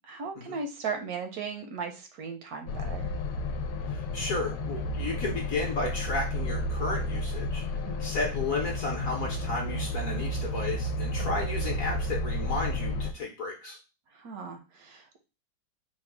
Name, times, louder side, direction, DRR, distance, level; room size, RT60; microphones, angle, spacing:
voice 1, 0.1-3.1 7.7-8.1 14.1-15.0, right 5 dB, 65° right, 5 dB, 0.9 m, -37 dB
sound 1, 2.7-13.1, left 1 dB, 75° left, 1.3 m, -32 dB
voice 2, 3.9-13.8, left 2 dB, 55° left, 0 dB, 1.0 m, -33 dB
4.2 x 2.3 x 4.6 m, 0.30 s
omnidirectional pair, 2.2 m